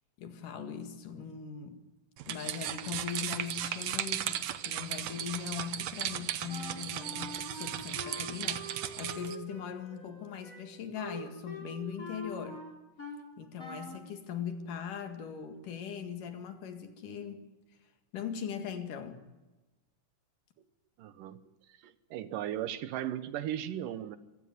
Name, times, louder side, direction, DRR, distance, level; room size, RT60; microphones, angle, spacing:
voice 1, 0.2-1.9 2.3-12.7 13.4-17.5 18.1-19.2, left 7 dB, 75° left, 7 dB, 3.5 m, -40 dB
sound 1, 2.2-9.4, right 11 dB, 70° right, 2.0 m, -36 dB
Wind instrument woodwind instrument, 6.5-13.3 13.6-14.0, equal, 25° left, 5.3 m, -44 dB
voice 2, 21.0-21.4 21.8-24.2, right 11 dB, 85° right, 13 dB, 2.7 m, -36 dB
25.0 x 15.5 x 9.6 m, 1.1 s
omnidirectional pair, 3.8 m